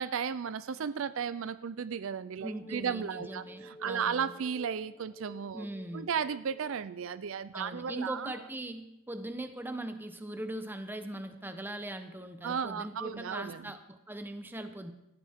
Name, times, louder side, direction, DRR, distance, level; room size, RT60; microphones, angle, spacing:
voice 1, 0.0-5.7 5.9-8.4 12.4-13.7, right 7 dB, 65° right, 15 dB, 0.4 m, -35 dB
voice 2, 2.4-4.3 5.5-6.1 7.5-14.9, right 1 dB, 10° right, 8 dB, 0.8 m, -40 dB
sound 1, 2.5-7.2, equal, 25° left, 0.8 m, -50 dB
17.5 x 13.5 x 3.6 m, 0.90 s
head